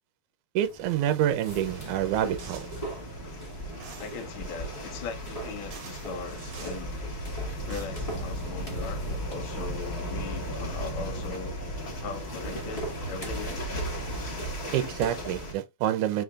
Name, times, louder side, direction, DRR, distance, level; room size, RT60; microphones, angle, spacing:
sound 1, 0.6-15.5, right 1 dB, 15° left, 1.7 m, -43 dB
voice 1, 0.6-2.7 14.7-16.2, right 11 dB, 80° right, 2.1 m, -27 dB
sound 2, 1.5-15.5, equal, 45° left, 0.8 m, -36 dB
sound 3, 2.4-2.9 3.8-4.3 5.2-5.3 5.7-6.8 7.5-7.9, right 6 dB, 60° right, 2.3 m, -47 dB
voice 2, 4.0-6.9 7.7-11.6 12.0-13.9, left 5 dB, 90° left, 1.1 m, -39 dB
5.0 x 4.1 x 2.3 m
omnidirectional pair, 3.7 m